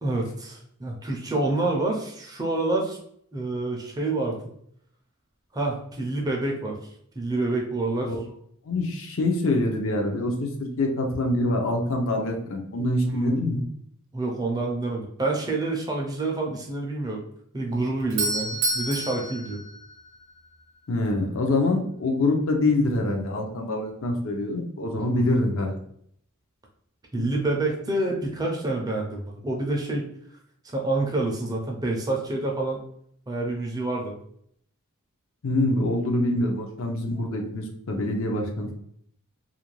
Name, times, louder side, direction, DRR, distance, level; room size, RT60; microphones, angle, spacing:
voice 1, 0.0-3.0 3.3-4.4 5.5-6.8 7.2-8.1 13.2-13.4 14.1-17.2 17.5-19.6 25.1-25.4 27.1-30.1 30.6-32.8 33.3-34.1, right 2 dB, 15° right, -1 dB, 0.4 m, -27 dB
voice 2, 8.7-13.6 20.9-25.8 35.4-38.7, left 2 dB, 60° left, 2 dB, 0.5 m, -25 dB
Doorbell, 17.7-20.6, right 2 dB, 60° right, 0.7 m, -30 dB
2.4 x 2.2 x 3.0 m, 0.67 s
head